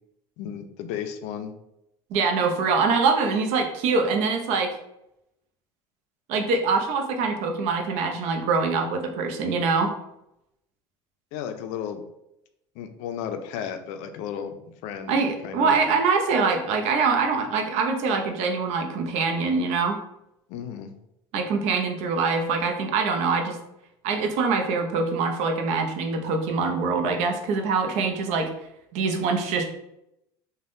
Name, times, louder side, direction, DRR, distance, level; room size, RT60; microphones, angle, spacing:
voice 1, 0.4-1.5 11.3-12.0 12.8-14.6 14.8-15.7 20.5-21.0, left 8 dB, 70° left, 7 dB, 0.4 m, -34 dB
voice 2, 2.1-4.8 6.3-9.9 15.1-20.0 21.3-23.6 24.0-28.5 28.9-29.7, right 4 dB, 65° right, 4 dB, 0.6 m, -24 dB
3.4 x 2.2 x 2.6 m, 0.84 s
supercardioid pair, 85°, 12 cm